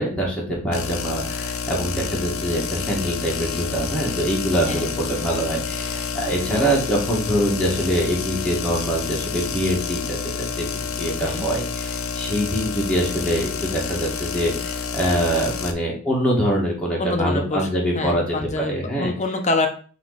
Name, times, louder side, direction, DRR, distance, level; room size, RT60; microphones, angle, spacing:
voice 1, 0.0-18.2 18.6-19.1, equal, 5° left, -4 dB, 1.8 m, -24 dB
sound 1, 0.7-15.7, left 5 dB, 85° left, 0.8 m, -29 dB
voice 2, 17.0-17.7 17.9-19.7, left 3 dB, 35° left, 5 dB, 0.9 m, -26 dB
7.7 x 3.2 x 4.1 m, 0.42 s
head